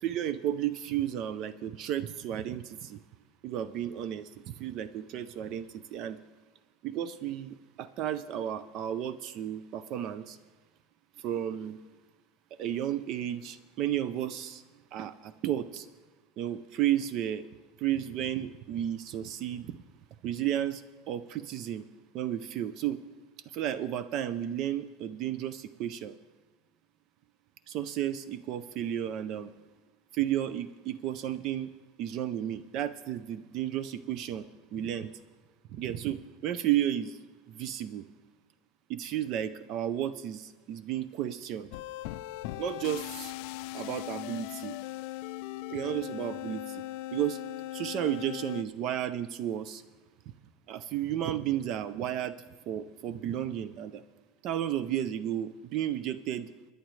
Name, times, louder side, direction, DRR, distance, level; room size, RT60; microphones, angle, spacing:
voice 1, 0.0-3.0 3.4-6.2 6.8-10.4 11.2-11.8 12.6-14.6 14.9-15.9 16.4-17.4 17.8-19.8 20.2-20.8 21.1-21.8 22.1-23.0 23.5-26.2 27.7-29.5 30.1-31.7 32.0-34.5 34.7-35.1 35.7-37.2 37.5-38.0 38.9-41.7 42.6-43.3 43.7-44.8 45.7-46.8 47.1-47.4 47.7-49.8 50.7-52.4 52.7-54.0 54.4-56.5, right 11 dB, 40° right, 15 dB, 0.4 m, -33 dB
sound 1, 41.7-48.6, left 17 dB, 55° left, 0.4 m, -39 dB
21.5 x 10.5 x 3.2 m, 1.3 s
supercardioid pair, 170°, 0 cm